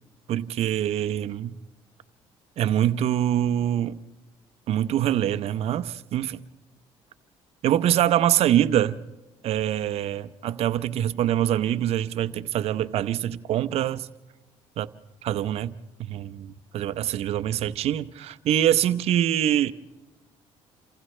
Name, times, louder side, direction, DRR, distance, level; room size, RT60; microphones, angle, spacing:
voice 1, 0.3-1.6 2.6-4.0 4.7-6.4 7.6-9.0 9.4-14.1 14.8-14.9 15.2-19.7, right 11 dB, 65° right, 0.8 m, -24 dB
29.0 x 27.0 x 3.3 m
cardioid pair, 105°, 11 cm